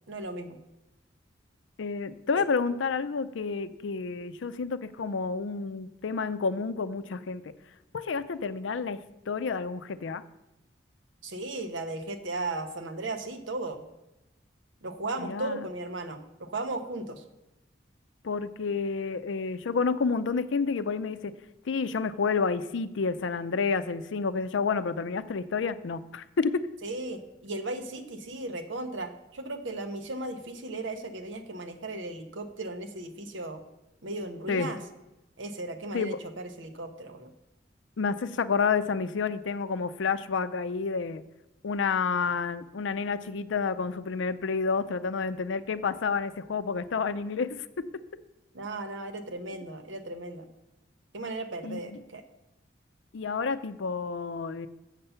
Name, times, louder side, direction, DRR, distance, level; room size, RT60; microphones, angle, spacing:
voice 1, 0.1-0.6 11.2-13.8 14.8-17.2 26.8-33.6 34.0-34.8 35.4-37.3 48.5-50.5 51.1-52.2, right 2 dB, 80° right, 7 dB, 0.9 m, -36 dB
voice 2, 1.8-7.5 7.9-9.0 9.3-10.2 15.2-15.6 18.2-21.3 21.7-26.7 34.5-34.7 35.9-36.2 38.0-41.2 41.6-48.0 51.6-52.0 53.1-54.7, left 5 dB, 80° left, 13 dB, 0.5 m, -29 dB
7.4 x 6.8 x 5.6 m, 0.96 s
head